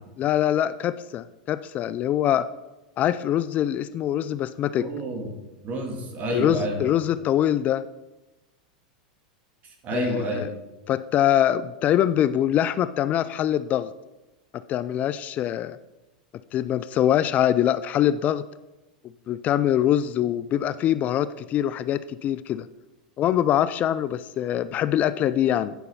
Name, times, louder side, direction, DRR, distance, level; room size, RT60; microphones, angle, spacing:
voice 1, 0.2-2.5 3.0-4.9 6.3-7.8 9.9-10.5 10.9-13.9 14.7-15.8 16.5-18.5 19.3-22.7 23.2-25.7, left 11 dB, 35° left, 15 dB, 0.3 m, -23 dB
voice 2, 4.8-5.3 5.6-6.9 9.8-10.5, right 1 dB, 40° right, 4 dB, 2.1 m, -29 dB
9.2 x 5.5 x 5.5 m, 1.0 s
hypercardioid pair, 105°, 4 cm